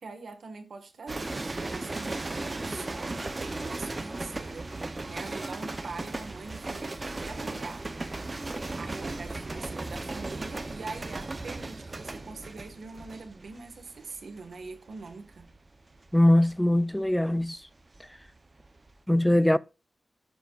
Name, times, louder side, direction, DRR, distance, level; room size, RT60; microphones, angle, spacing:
voice 1, 0.0-4.7 5.1-8.3 8.7-15.5, right 4 dB, 75° right, 1.6 m, -43 dB
sound 1, 1.1-18.3 18.6-19.0, right 2 dB, 30° right, 0.8 m, -37 dB
voice 2, 16.1-17.6 19.1-19.6, left 1 dB, 5° left, 0.4 m, -21 dB
16.5 x 6.9 x 2.5 m
wide cardioid pair, 150°, 0 cm